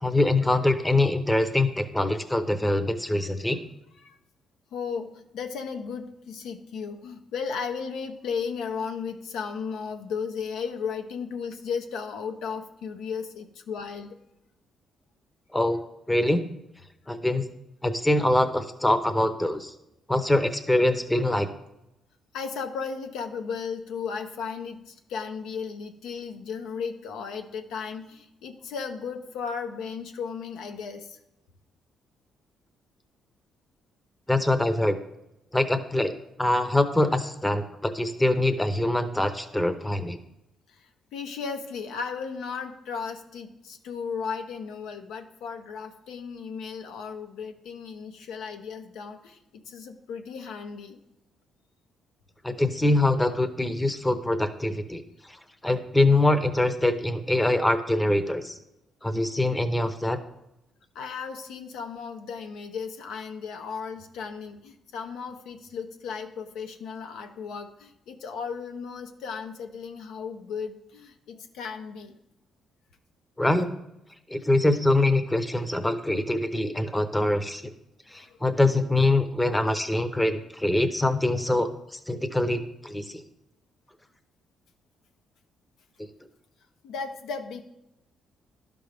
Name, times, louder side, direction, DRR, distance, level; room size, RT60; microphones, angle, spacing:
voice 1, 0.0-3.6 15.5-15.8 16.1-16.4 17.1-17.4 17.8-19.7 20.1-21.5 34.3-35.0 35.5-36.1 36.4-40.2 52.4-55.0 55.3-55.4 55.6-58.6 59.0-60.2 73.4-73.7 74.3-77.6 78.1-81.7 82.1-83.2, left 1 dB, 10° left, 10 dB, 0.7 m, -24 dB
voice 2, 4.7-14.2 22.3-31.2 40.7-40.8 41.1-51.0 60.9-72.1 78.1-78.4 86.8-87.6, left 6 dB, 85° left, 6 dB, 0.7 m, -35 dB
11.5 x 5.2 x 3.4 m, 0.88 s
cardioid pair, 90°, 0 cm